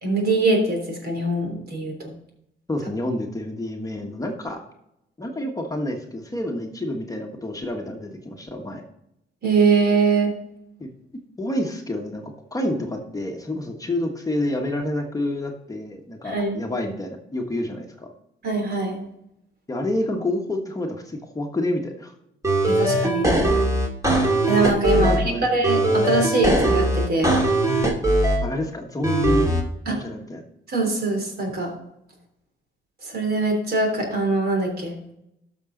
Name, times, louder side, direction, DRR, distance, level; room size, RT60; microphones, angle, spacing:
voice 1, 0.0-2.1 9.4-10.3 16.2-16.6 18.4-19.0 22.6-23.3 24.5-27.4 29.9-30.0 30.7-31.7 33.0-34.9, right 3 dB, 55° right, 2 dB, 3.3 m, -22 dB
voice 2, 2.7-4.6 5.2-8.8 10.8-10.9 11.4-18.1 19.7-22.1 24.9-25.5 28.4-29.5 29.9-30.4, left 1 dB, 15° left, 2 dB, 1.3 m, -28 dB
sound 1, 22.4-25.2 25.6-28.4 29.0-29.6, right 1 dB, 15° right, 2.3 m, -20 dB
12.5 x 6.2 x 3.9 m, 0.80 s
cardioid pair, 90°, 20 cm